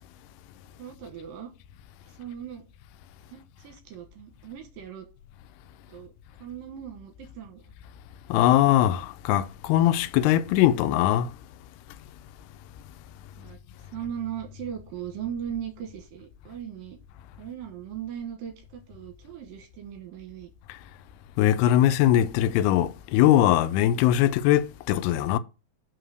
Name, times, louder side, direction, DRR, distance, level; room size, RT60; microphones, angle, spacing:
voice 1, 0.8-1.5 2.1-2.7 3.3-5.1 5.9-6.1 6.4-7.7 13.4-13.6 13.9-17.0 17.4-20.5, right 9 dB, 70° right, 2.7 m, -38 dB
voice 2, 8.3-11.3 21.4-25.4, left 12 dB, 85° left, 2.6 m, -21 dB
5.9 x 4.7 x 6.3 m
omnidirectional pair, 4.5 m